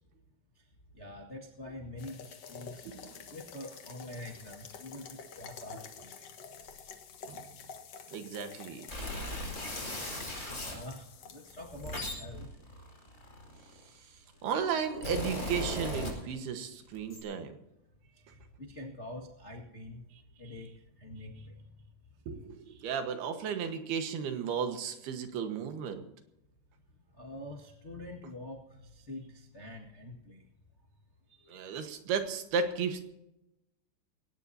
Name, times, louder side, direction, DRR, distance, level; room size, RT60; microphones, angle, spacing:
voice 1, 0.9-2.9 3.3-6.3 10.7-12.5 18.6-20.0 20.4-20.7 21.0-21.6 22.6-22.9 27.2-30.4 31.4-31.6, left 1 dB, 75° left, -1 dB, 0.6 m, -45 dB
sound 1, 2.0-12.0, left 6 dB, 60° left, 1.7 m, -49 dB
voice 2, 2.9-3.2 7.3-7.4 8.1-8.9 10.1-10.2 14.4-17.5 22.3-26.0 31.5-33.0, right 6 dB, 75° right, 7 dB, 3.3 m, -34 dB
sound 2, 8.9-10.8 11.5-13.9 14.6-16.6 16.9-17.2, left 1 dB, 15° left, 4.8 m, -37 dB
21.5 x 18.0 x 2.8 m, 0.87 s
omnidirectional pair, 4.8 m